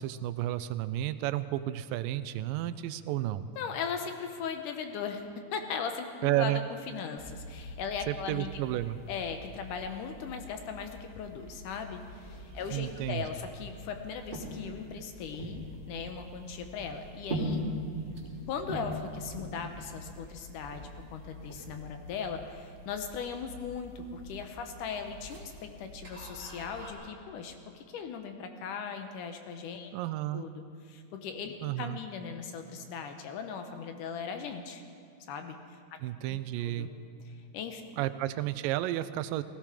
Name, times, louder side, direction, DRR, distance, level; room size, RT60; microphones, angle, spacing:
voice 1, 0.0-3.5 6.2-6.6 8.1-9.0 12.7-13.2 29.9-30.4 31.6-32.0 36.0-36.9 38.0-39.4, right 14 dB, 85° right, 13 dB, 2.2 m, -32 dB
voice 2, 3.6-5.2 5.5-6.6 6.9-8.6 9.1-17.7 18.5-29.9 30.3-34.8 35.3-35.8 36.2-36.9 37.3-37.8, left 6 dB, 75° left, 6 dB, 2.4 m, -38 dB
sound 1, 7.2-26.9, equal, 15° right, 2.6 m, -42 dB
17.0 x 16.0 x 5.0 m, 2.4 s
omnidirectional pair, 3.9 m